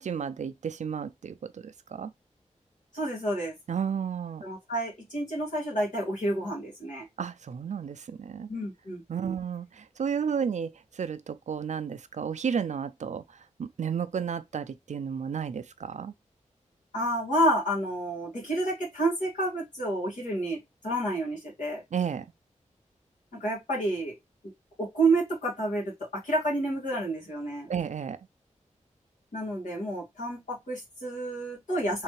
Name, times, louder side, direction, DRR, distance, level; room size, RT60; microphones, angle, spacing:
voice 1, 0.0-2.1 3.7-4.4 7.2-8.5 9.1-13.2 13.6-16.1 21.9-22.3 27.7-28.2, right 7 dB, 65° right, 0.4 m, -32 dB
voice 2, 2.9-3.5 4.4-7.0 8.5-9.3 16.9-21.8 23.3-24.1 24.8-25.9 26.2-27.7 29.3-32.0, right 1 dB, 80° left, 2.2 m, -29 dB
3.4 x 3.2 x 3.2 m
wide cardioid pair, 100°, 13 cm